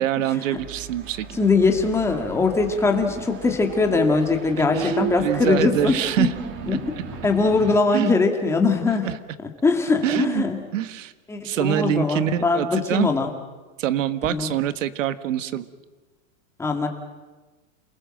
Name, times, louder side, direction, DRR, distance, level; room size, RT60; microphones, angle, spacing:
voice 1, 0.0-1.4 4.7-6.3 7.9-8.2 9.0-9.1 10.0-10.4 10.7-11.1 11.4-13.1 13.8-15.7, right 11 dB, 75° right, 13 dB, 1.6 m, -25 dB
sound 1, 0.6-7.8, right 7 dB, 30° right, 2.3 m, -35 dB
voice 2, 1.3-6.3 6.7-6.9 7.2-9.1 9.6-10.6 11.3-13.3 14.3-14.5 16.6-16.9, left 4 dB, 5° left, 3 dB, 2.2 m, -21 dB
28.5 x 19.5 x 7.8 m, 1.2 s
supercardioid pair, 165°, 39 cm